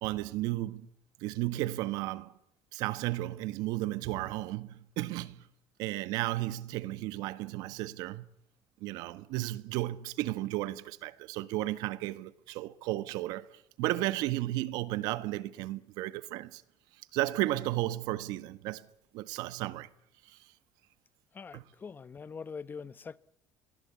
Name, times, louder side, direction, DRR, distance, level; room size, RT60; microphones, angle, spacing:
voice 1, 0.0-0.9 1.2-2.3 2.7-5.5 5.8-8.3 8.8-16.6 17.1-18.9 19.1-19.9 20.3-20.4 21.5-21.6, right 16 dB, 80° right, 1.4 m, -34 dB
voice 2, 21.3-23.2, left 5 dB, 30° left, 1.0 m, -43 dB
29.0 x 23.0 x 8.5 m
cardioid pair, 105°, 7 cm